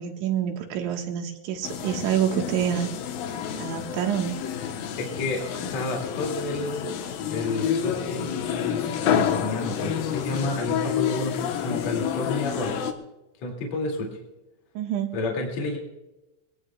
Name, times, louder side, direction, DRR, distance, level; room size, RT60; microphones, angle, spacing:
voice 1, 0.0-2.9 3.6-4.4 14.8-15.1, right 9 dB, 75° right, 3 dB, 3.6 m, -27 dB
sound 1, 1.6-12.9, left 9 dB, 80° left, 2.1 m, -29 dB
voice 2, 5.0-7.0 7.2-12.8 13.4-14.2 15.1-15.8, left 2 dB, 40° left, -1 dB, 2.9 m, -30 dB
23.5 x 18.5 x 2.3 m, 0.99 s
omnidirectional pair, 5.7 m